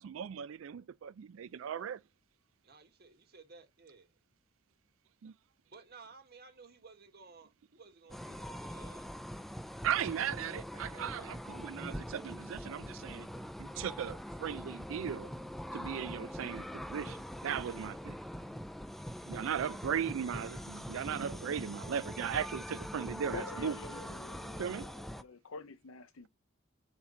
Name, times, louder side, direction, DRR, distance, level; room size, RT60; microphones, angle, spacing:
voice 1, 0.0-2.0 5.2-5.3 9.8-13.3 13.6-15.3 15.7-18.2 19.3-23.7 24.6-24.9, right 8 dB, 75° right, 0.4 m, -37 dB
voice 2, 2.6-4.2 5.7-9.1 10.8-11.4 20.2-21.5, right 4 dB, 50° right, 1.5 m, -56 dB
sound 1, 8.1-25.2, equal, ahead, 0.4 m, -43 dB
voice 3, 23.3-26.3, left 4 dB, 85° left, 0.7 m, -47 dB
5.8 x 4.4 x 3.8 m
head